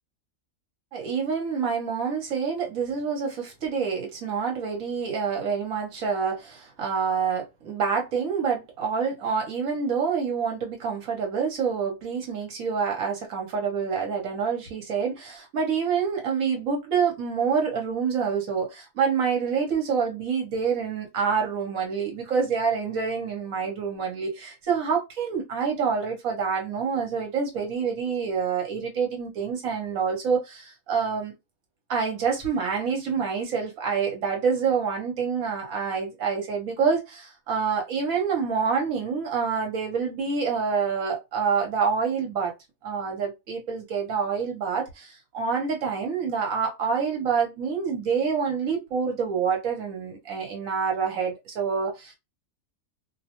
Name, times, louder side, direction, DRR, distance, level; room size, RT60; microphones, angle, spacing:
voice 1, 0.9-31.3 31.9-42.5 42.8-52.1, right 6 dB, 75° right, 1.1 m, -27 dB
2.5 x 2.1 x 2.8 m
omnidirectional pair, 1.5 m